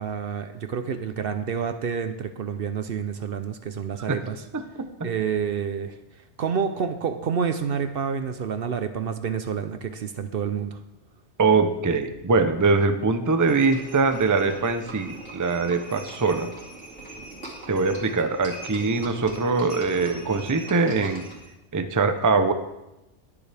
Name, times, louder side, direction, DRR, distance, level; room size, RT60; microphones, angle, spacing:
voice 1, 0.0-4.4 5.0-6.0 6.4-10.8, right 7 dB, 60° right, 9 dB, 0.8 m, -28 dB
voice 2, 4.5-5.1 11.4-16.5 17.7-21.2 21.7-22.5, right 4 dB, 20° right, 8 dB, 0.5 m, -23 dB
Livestock farm animals working animals, 13.4-21.5, right 2 dB, 80° right, 2.7 m, -41 dB
20.0 x 7.0 x 3.4 m, 0.93 s
omnidirectional pair, 1.2 m